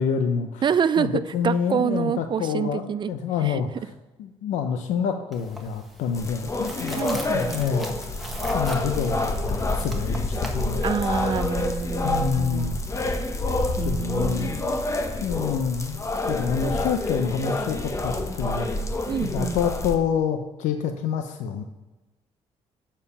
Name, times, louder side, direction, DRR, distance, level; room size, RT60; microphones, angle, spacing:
voice 1, 0.0-0.6 1.0-3.7 4.2-7.9 8.5-10.8 12.0-12.8 13.2-13.3 13.8-14.6 15.2-18.7 19.2-21.6, left 7 dB, 90° left, 6 dB, 0.6 m, -27 dB
voice 2, 0.6-3.1 3.4-3.6 7.0-7.6 10.8-12.8 13.8-14.6 16.6-16.8 19.1-19.6, right 7 dB, 40° right, 14 dB, 0.4 m, -27 dB
sound 1, 5.3-12.4, right 1 dB, ahead, 1.3 m, -40 dB
sound 2, 6.1-19.9, left 2 dB, 25° left, 0.9 m, -28 dB
7.1 x 4.5 x 6.9 m, 1.1 s
cardioid pair, 95°, 12 cm